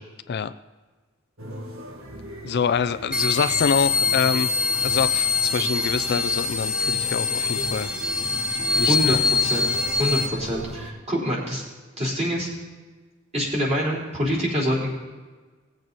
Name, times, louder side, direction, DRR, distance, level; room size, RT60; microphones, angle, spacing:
sound 1, 1.4-10.9, equal, 85° right, 1.7 m, -38 dB
voice 1, 2.4-4.5 4.8-7.9 8.8-9.2 9.6-9.7, left 6 dB, 55° left, 12 dB, 0.4 m, -25 dB
sound 2, 3.1-10.3, left 4 dB, 5° right, 0.8 m, -24 dB
voice 2, 8.7-9.7 10.0-11.6 12.0-12.5 13.3-14.9, equal, 35° right, -6 dB, 3.8 m, -25 dB
18.5 x 7.6 x 4.0 m, 1.3 s
head